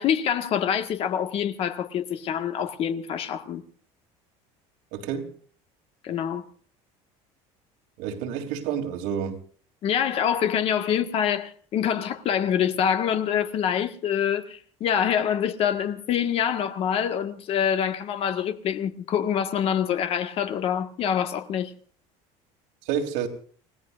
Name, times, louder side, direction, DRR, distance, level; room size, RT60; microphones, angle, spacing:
voice 1, 0.0-3.6 6.0-6.4 9.8-21.7, left 8 dB, 45° left, 1.7 m, -25 dB
voice 2, 4.9-5.3 8.0-9.4 22.9-23.3, right 8 dB, 90° right, 3.3 m, -29 dB
30.0 x 17.5 x 2.6 m
cardioid pair, 150°, 13 cm